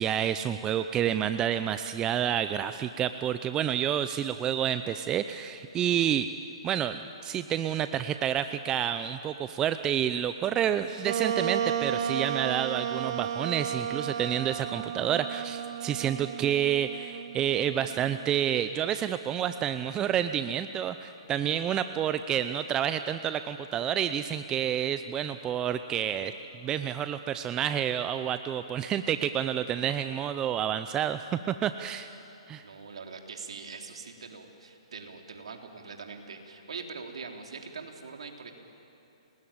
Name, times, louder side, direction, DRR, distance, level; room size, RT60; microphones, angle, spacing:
voice 1, 0.0-6.3 6.6-26.3 26.6-32.1 32.5-32.6, right 10 dB, 20° right, 11 dB, 0.7 m, -29 dB
Wind instrument woodwind instrument, 11.0-18.5, right 9 dB, 55° right, 1.0 m, -33 dB
voice 2, 32.6-38.5, right 4 dB, 75° right, 3 dB, 3.5 m, -43 dB
29.0 x 20.0 x 8.8 m, 2.9 s
hypercardioid pair, 135°, 3 cm